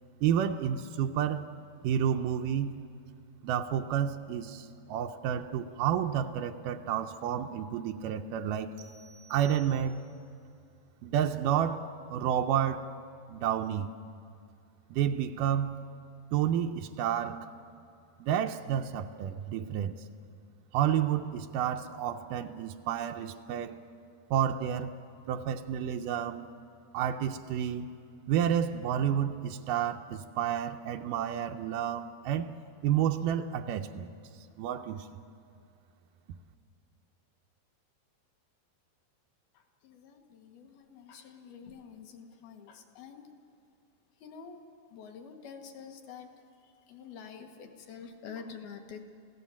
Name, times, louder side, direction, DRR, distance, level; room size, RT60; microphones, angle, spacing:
voice 1, 0.2-1.5 1.8-2.8 3.4-8.7 9.3-10.0 11.0-12.9 13.3-13.9 14.9-15.9 16.3-17.5 18.2-20.0 20.7-23.8 24.3-24.9 25.3-26.5 26.9-27.9 28.3-32.6 32.8-34.1 34.6-35.1, right 9 dB, 90° right, 5 dB, 1.8 m, -30 dB
sound 1, 8.8-10.3, right 4 dB, 75° right, 1.7 m, -56 dB
voice 2, 39.5-43.3 44.2-49.0, left 6 dB, 75° left, 4 dB, 3.2 m, -48 dB
27.0 x 17.0 x 7.2 m, 2.4 s
omnidirectional pair, 4.6 m